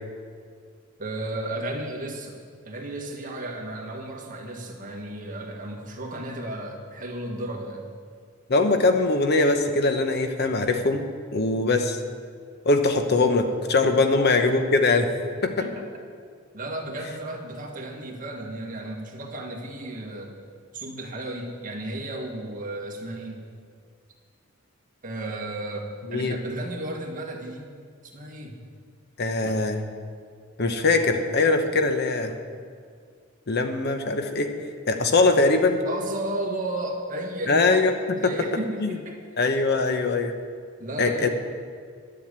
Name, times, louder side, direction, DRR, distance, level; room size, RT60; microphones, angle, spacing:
voice 1, 1.0-2.4 2.7-7.9 13.8-13.9 15.6-15.9 16.5-20.4 20.7-23.5 25.0-27.7 28.0-28.6 35.9-37.7 38.2-39.2 40.8-41.3, right 1 dB, 45° right, 0 dB, 1.8 m, -34 dB
voice 2, 8.5-11.0 11.3-12.0 12.6-15.1 15.4-15.7 26.1-26.4 29.2-29.8 30.6-32.4 33.5-34.5 34.9-35.8 37.5-38.3 38.8-38.9 39.4-40.3 41.0-41.3, left 3 dB, 55° left, 6 dB, 1.0 m, -22 dB
11.5 x 7.6 x 8.8 m, 2.1 s
head